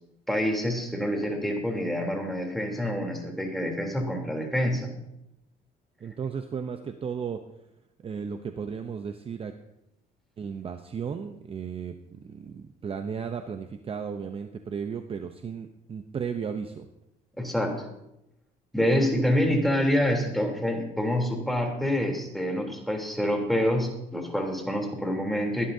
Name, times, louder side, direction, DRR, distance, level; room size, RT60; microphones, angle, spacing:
voice 1, 0.3-4.9 17.4-17.9 18.7-25.7, equal, ahead, 0 dB, 3.3 m, -27 dB
voice 2, 6.0-7.4 8.0-9.5 10.4-16.9, right 6 dB, 35° right, 7 dB, 0.7 m, -35 dB
22.5 x 11.5 x 2.7 m, 0.84 s
cardioid pair, 110°, 17 cm